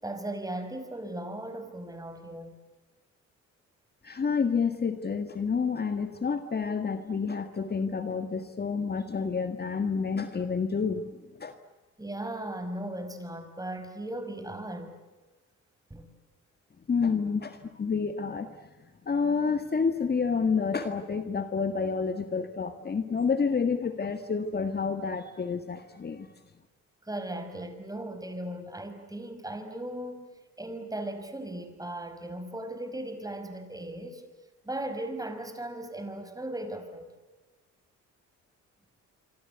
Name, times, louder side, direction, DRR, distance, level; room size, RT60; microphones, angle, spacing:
voice 1, 0.0-2.6 12.0-14.9 15.9-16.1 27.0-30.3 30.6-34.3 34.6-37.1, right 1 dB, 10° right, 8 dB, 5.3 m, -37 dB
voice 2, 4.0-11.1 11.4-11.5 16.9-18.5 19.1-26.3, left 5 dB, 35° left, 8 dB, 1.7 m, -29 dB
26.0 x 25.5 x 8.1 m, 1.2 s
cardioid pair, 90°, 30 cm